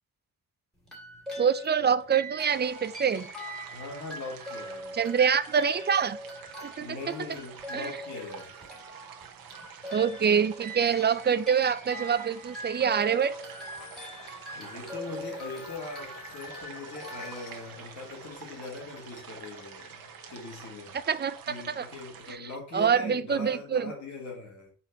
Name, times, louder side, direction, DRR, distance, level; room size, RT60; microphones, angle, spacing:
sound 1, 0.8-18.3, right 1 dB, ahead, 2.6 m, -43 dB
voice 1, 1.4-3.3 4.9-6.2 6.6-7.0 7.7-7.9 9.9-13.3 21.1-21.4 21.7-21.9 22.3-23.9, right 7 dB, 30° right, 0.4 m, -25 dB
sound 2, 2.4-22.3, right 8 dB, 85° right, 1.1 m, -48 dB
voice 2, 3.7-5.0 6.8-8.7 14.0-20.0 20.3-21.0 21.5-24.7, left 3 dB, 55° left, 2.4 m, -41 dB
sound 3, 13.2-21.8, left 4 dB, 85° left, 1.8 m, -50 dB
4.5 x 4.3 x 5.8 m
wide cardioid pair, 140°, 34 cm